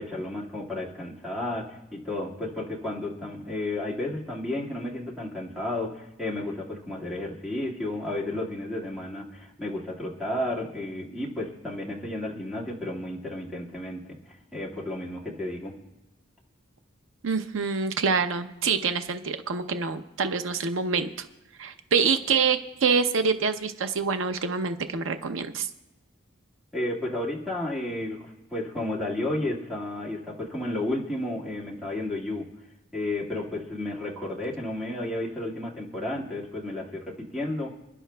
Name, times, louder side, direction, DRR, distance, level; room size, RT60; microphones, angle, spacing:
voice 1, 0.0-15.8 26.7-32.5 32.9-37.7, left 1 dB, ahead, -3 dB, 1.9 m, -32 dB
voice 2, 17.2-21.1 21.6-25.7, right 5 dB, 85° right, 8 dB, 0.6 m, -26 dB
29.5 x 11.0 x 2.3 m, 1.0 s
head